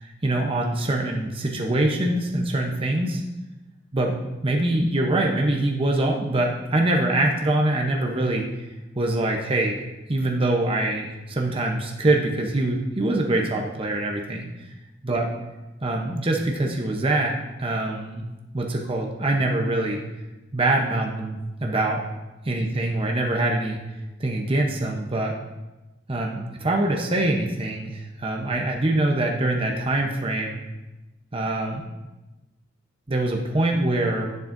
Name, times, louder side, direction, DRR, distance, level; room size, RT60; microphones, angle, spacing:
voice 1, 0.2-3.2 3.9-4.2 4.4-8.5 9.0-9.8 10.1-14.5 15.0-15.3 15.8-18.3 18.5-20.0 20.5-22.0 22.4-23.8 24.2-25.3 26.1-30.6 31.3-31.8 33.1-34.3, right 2 dB, 30° right, 1 dB, 0.8 m, -24 dB
10.5 x 8.9 x 2.6 m, 1.1 s
head